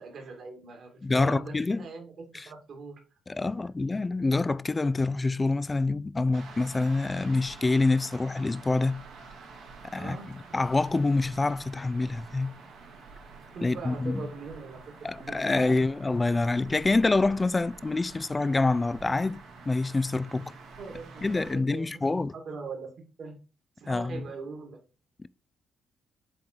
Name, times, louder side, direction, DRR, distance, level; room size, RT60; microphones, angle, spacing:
voice 1, 0.0-3.0 9.9-10.6 13.5-15.9 20.3-20.5 20.8-21.9 22.1-22.9 23.2-23.4 23.8-24.8, right 4 dB, 60° right, 2.4 m, -42 dB
voice 2, 1.0-1.9 3.3-9.1 9.9-10.2 10.5-12.6 13.6-14.2 15.0-19.4 19.7-20.5 21.2-22.3 23.9-24.2 25.2-25.3, left 3 dB, 20° left, 0.4 m, -26 dB
sound 1, 6.3-21.5, right 4 dB, 80° right, 2.4 m, -48 dB
7.7 x 3.8 x 4.5 m
cardioid pair, 90°, 0 cm